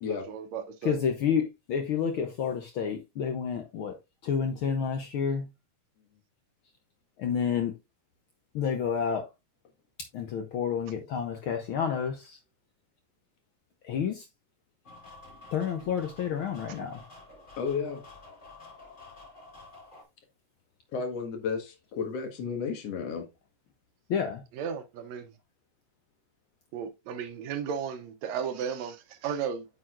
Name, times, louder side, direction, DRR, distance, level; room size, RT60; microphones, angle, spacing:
voice 1, 0.1-1.0 24.5-25.3 26.7-29.7, right 7 dB, 70° right, 1.9 m, -34 dB
voice 2, 0.8-3.9 4.2-5.5 7.2-7.7 8.5-9.3 10.1-12.4 13.9-14.3 15.5-17.0 24.1-24.4, left 7 dB, 75° left, 1.2 m, -29 dB
sound 1, 14.8-20.0, left 2 dB, 15° left, 3.8 m, -50 dB
voice 3, 17.6-18.0 20.9-23.3, left 5 dB, 60° left, 2.4 m, -32 dB
8.9 x 6.2 x 2.4 m
omnidirectional pair, 3.4 m